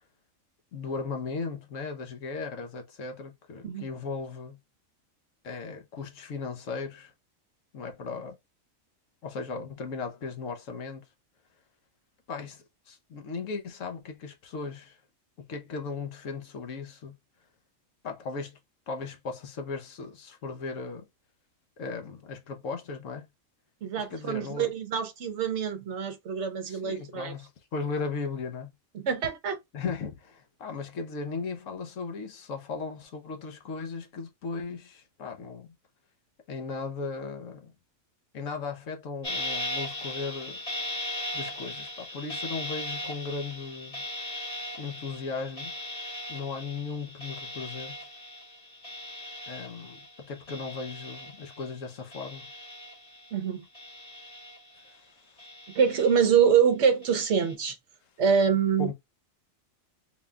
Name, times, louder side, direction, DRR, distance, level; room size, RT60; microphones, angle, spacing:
voice 1, 0.7-4.6 5.4-7.1 7.7-8.4 9.2-11.0 12.3-15.0 15.5-17.1 18.0-18.6 18.9-21.1 21.8-23.3 24.0-24.7 26.7-28.7 29.7-35.7 36.5-37.7 38.3-40.6 41.3-44.0 44.8-45.7 46.3-48.0 49.5-52.5 54.8-55.1 58.8-58.9, left 4 dB, 70° left, 1.2 m, -37 dB
voice 2, 23.8-27.3 28.9-29.6 53.3-53.7 55.7-57.8 58.2-58.9, right 7 dB, 65° right, 0.9 m, -25 dB
sound 1, 39.2-51.8 52.1-53.3 53.7-55.0 55.4-56.4 57.0-57.5, left 1 dB, 25° left, 1.1 m, -38 dB
4.0 x 2.3 x 3.4 m
omnidirectional pair, 1.4 m